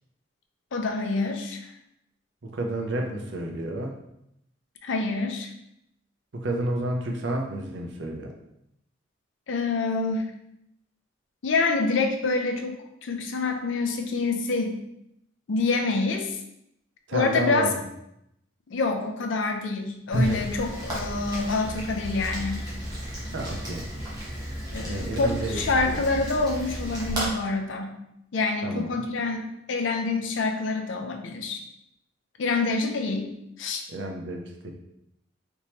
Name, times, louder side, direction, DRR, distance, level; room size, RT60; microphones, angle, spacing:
voice 1, 0.7-1.7 4.8-5.5 9.5-10.3 11.4-14.8 15.5-16.4 17.1-17.7 18.7-22.6 24.7-28.0 28.3-31.6 32.4-33.3 33.6-33.8, left 3 dB, 70° left, 4 dB, 0.5 m, -27 dB
voice 2, 2.4-3.9 6.3-8.3 17.1-17.7 20.1-20.5 23.3-23.8 24.9-26.0 28.6-29.0 33.9-34.7, right 1 dB, 65° right, 2 dB, 0.6 m, -30 dB
Rain, 20.1-27.3, equal, 20° right, 0.9 m, -34 dB
3.5 x 2.9 x 2.9 m, 0.79 s
head